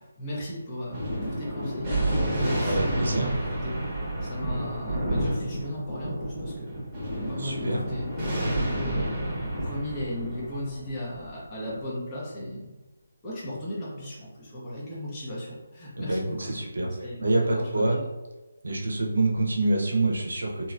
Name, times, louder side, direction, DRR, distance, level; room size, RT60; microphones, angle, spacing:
voice 1, 0.0-3.7 4.2-12.7 13.2-18.0, left 1 dB, 20° left, -7 dB, 1.0 m, -36 dB
Thunder, 0.9-11.8, right 1 dB, 10° right, 1.2 m, -30 dB
voice 2, 2.7-3.3 7.4-7.8 16.0-16.9 17.2-18.0 18.6-20.7, right 2 dB, 75° right, 0 dB, 0.7 m, -26 dB
3.0 x 2.7 x 2.5 m, 1.1 s
figure-of-eight pair, 155°, 0 cm